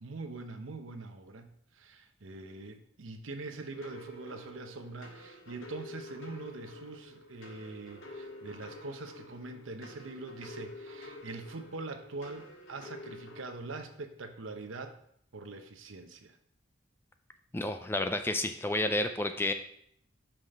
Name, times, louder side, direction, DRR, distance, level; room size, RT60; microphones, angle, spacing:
voice 1, 0.0-15.0 15.3-16.4, right 3 dB, 80° right, 7 dB, 0.8 m, -43 dB
sound 1, 3.8-13.4, left 1 dB, 80° left, 1.7 m, -48 dB
voice 2, 17.5-19.5, left 2 dB, 10° left, 8 dB, 0.3 m, -30 dB
6.0 x 5.0 x 4.3 m, 0.68 s
head